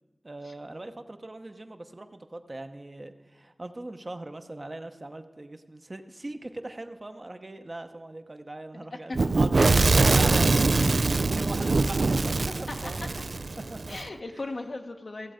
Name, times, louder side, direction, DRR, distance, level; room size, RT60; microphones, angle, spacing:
voice 1, 0.2-13.1 13.7-14.0 14.3-14.4, right 2 dB, 40° right, 7 dB, 0.8 m, -40 dB
voice 2, 8.7-9.5 12.8-12.9 13.9-15.3, left 2 dB, 70° left, 4 dB, 1.0 m, -38 dB
Fire / Explosion, 9.1-14.0, right 3 dB, 75° right, 0.3 m, -23 dB
15.0 x 7.4 x 5.0 m, 1.2 s
wide cardioid pair, 60°, 0 cm